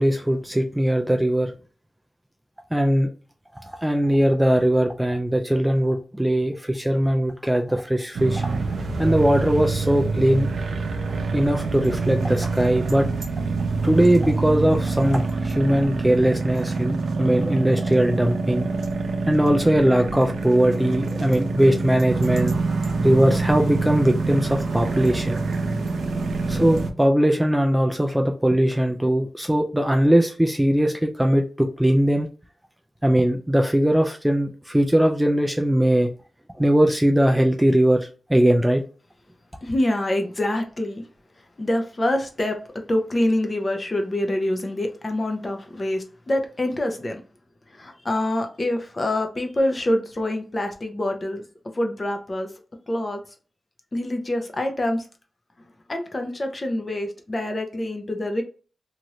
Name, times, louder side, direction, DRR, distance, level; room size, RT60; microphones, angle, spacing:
voice 1, 0.0-1.5 2.7-3.1 3.6-8.5 9.0-10.5 11.3-13.1 13.8-18.7 19.3-22.6 23.0-25.4 26.5-32.3 33.0-36.1 36.6-38.0 38.3-38.8, right 1 dB, 5° right, 0.3 m, -20 dB
sound 1, 8.1-26.9, right 3 dB, 90° right, 0.5 m, -26 dB
voice 2, 39.6-41.0 41.6-42.6 42.9-47.2 47.7-51.4 51.8-52.5 52.9-53.2 53.9-55.0 55.9-58.4, left 1 dB, 30° left, 0.7 m, -25 dB
2.9 x 2.5 x 3.0 m
wide cardioid pair, 110°, 0 cm